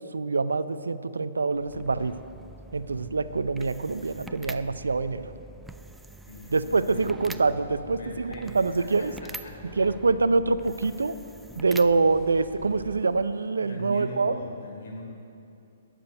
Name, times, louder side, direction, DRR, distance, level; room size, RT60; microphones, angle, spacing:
voice 1, 0.1-2.1 2.7-5.3 6.5-9.1 9.8-11.1 11.6-14.3, right 3 dB, 80° right, 13 dB, 0.5 m, -25 dB
sound 1, 1.5-13.5, right 2 dB, 5° right, 0.4 m, -45 dB
voice 2, 6.3-7.0 8.0-9.9 13.6-15.0, equal, 65° left, -1 dB, 3.3 m, -41 dB
11.5 x 7.6 x 7.9 m, 2.6 s
figure-of-eight pair, 125°, 0 cm